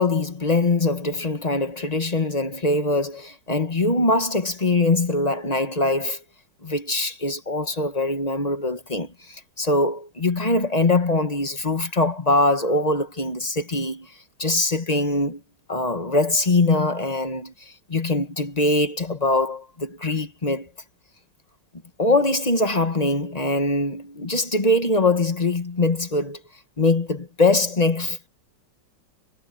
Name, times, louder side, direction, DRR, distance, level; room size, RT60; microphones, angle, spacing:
voice 1, 0.0-6.2 6.6-14.1 14.4-15.4 15.7-20.7 22.0-26.4 26.8-28.3, left 2 dB, 25° left, 1.3 m, -22 dB
omnidirectional pair, 1.9 m